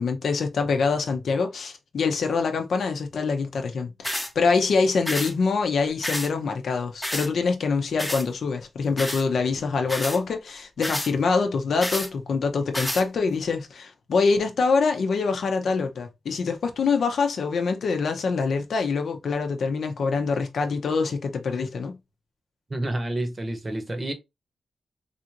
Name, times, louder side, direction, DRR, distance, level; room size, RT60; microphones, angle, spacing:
voice 1, 0.0-22.0, left 4 dB, 70° left, 0.7 m, -25 dB
sound 1, 4.0-4.3 5.1-5.3 6.0-6.3 7.0-7.3 8.0-8.3 9.0-9.2 9.9-10.2 10.8-11.1 11.8-12.1 12.7-13.0, left 1 dB, 5° left, 0.7 m, -29 dB
voice 2, 22.7-24.1, right 1 dB, 30° right, 0.9 m, -29 dB
3.5 x 2.6 x 2.8 m
cardioid pair, 75°, 0 cm